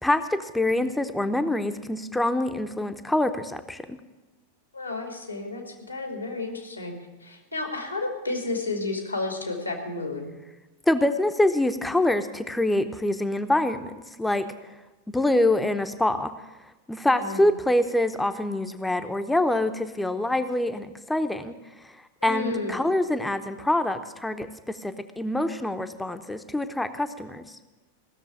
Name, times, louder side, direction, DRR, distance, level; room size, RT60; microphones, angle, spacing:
voice 1, 0.0-4.0 10.9-13.9 14.2-14.4 15.1-16.3 16.9-21.6 22.2-27.4, left 1 dB, 5° left, 9 dB, 0.8 m, -25 dB
voice 2, 4.7-6.9 7.2-10.3 17.2-17.5 22.2-22.8, left 2 dB, 85° left, 3 dB, 2.4 m, -31 dB
16.5 x 7.0 x 8.6 m, 1.1 s
figure-of-eight pair, 90°, 0 cm